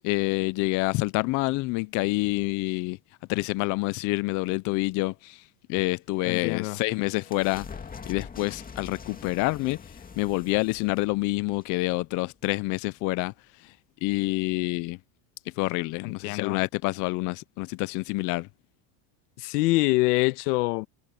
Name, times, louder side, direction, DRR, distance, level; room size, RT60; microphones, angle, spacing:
voice 1, 0.0-3.0 3.3-5.4 5.7-7.7 8.1-13.3 13.6-13.7 14.0-15.0 15.6-18.5, left 23 dB, 45° left, 0.4 m, -27 dB
voice 2, 6.2-6.8 16.0-16.6 19.4-20.9, left 21 dB, 85° left, 1.4 m, -25 dB
sound 1, 6.2-12.6, left 5 dB, 20° left, 2.2 m, -45 dB
cardioid pair, 140°, 46 cm